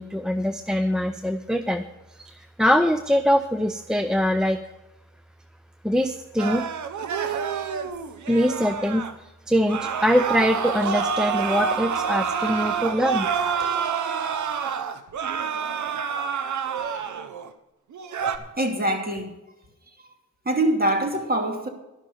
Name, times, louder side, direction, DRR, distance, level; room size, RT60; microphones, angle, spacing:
voice 1, 0.0-1.8 2.2-4.6 5.8-6.7 8.3-9.0 9.5-13.3, equal, ahead, 0.6 m, -23 dB
sound 1, 6.4-9.1 9.7-17.5 17.9-18.4, right 6 dB, 80° right, 0.9 m, -27 dB
voice 2, 18.6-19.3 20.4-21.7, right 1 dB, 30° right, 2.6 m, -24 dB
12.0 x 6.0 x 8.7 m
cardioid pair, 60°, 29 cm